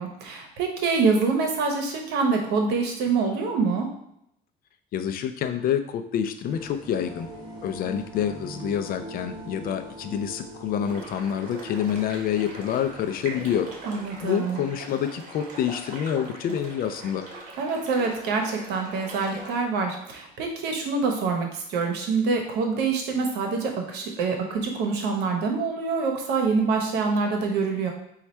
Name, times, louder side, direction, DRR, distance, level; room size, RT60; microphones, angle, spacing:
voice 1, 0.0-3.9 13.9-14.6 17.6-27.9, right 4 dB, 80° right, 3 dB, 0.9 m, -25 dB
voice 2, 4.9-7.3 7.6-13.7 14.2-17.3, left 9 dB, 60° left, 8 dB, 0.4 m, -27 dB
sound 1, 6.5-14.3, right 2 dB, 25° right, 1.4 m, -43 dB
sound 2, 10.8-19.6, right 2 dB, 50° right, 1.3 m, -42 dB
4.4 x 2.4 x 4.2 m, 0.76 s
cardioid pair, 110°, 17 cm